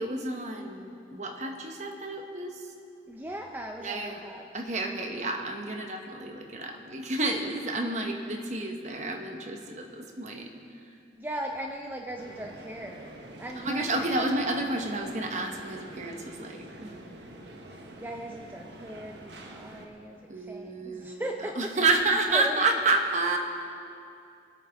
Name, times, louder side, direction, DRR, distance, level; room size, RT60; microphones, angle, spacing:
voice 1, 0.0-2.7 3.8-4.2 4.5-10.5 13.6-16.9 20.3-23.4, right 2 dB, 40° right, 3 dB, 1.1 m, -30 dB
voice 2, 3.1-4.4 11.1-13.1 13.4-14.3 17.7-21.7 22.3-22.7, right 1 dB, 10° right, 2 dB, 0.5 m, -38 dB
sound 1, 12.2-19.9, right 1 dB, 75° right, 1.1 m, -47 dB
24.5 x 8.3 x 3.5 m, 2.5 s
head